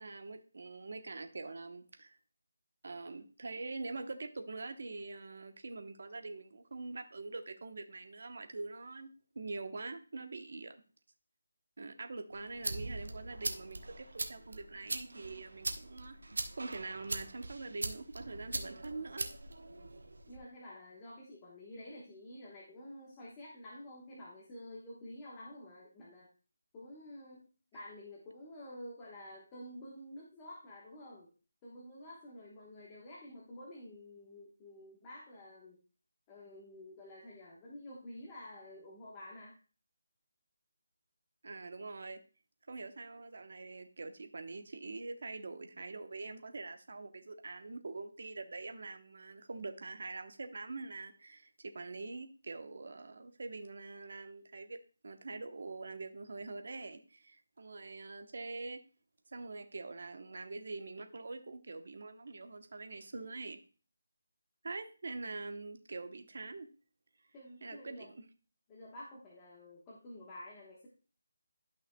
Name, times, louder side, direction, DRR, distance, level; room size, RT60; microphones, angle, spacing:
voice 1, 0.0-2.2 2.8-10.8 11.8-16.2 16.5-19.3 41.4-42.2 42.7-58.8 59.3-63.6 64.6-66.7 67.6-68.1, right 3 dB, 55° right, 7 dB, 0.9 m, -44 dB
sound 1, 12.3-20.4, right 2 dB, 85° right, 1.1 m, -41 dB
voice 2, 20.3-26.3 26.7-31.3 31.6-35.8 36.3-39.5 67.3-68.1 68.7-70.9, left 1 dB, 15° left, -5 dB, 1.2 m, -50 dB
12.5 x 5.7 x 2.2 m, 0.36 s
figure-of-eight pair, 170°, 0 cm